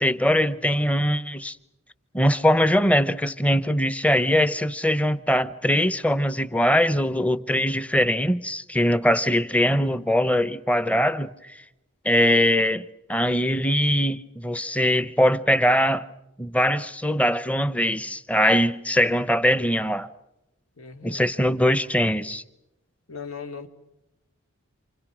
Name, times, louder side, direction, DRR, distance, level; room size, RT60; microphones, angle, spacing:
voice 1, 0.0-1.6 2.1-11.3 12.0-16.1 16.4-20.1 21.0-22.4, equal, 5° left, 0.9 m, -22 dB
voice 2, 20.8-21.2 23.1-23.7, left 5 dB, 90° left, 2.8 m, -38 dB
29.0 x 28.0 x 6.3 m
head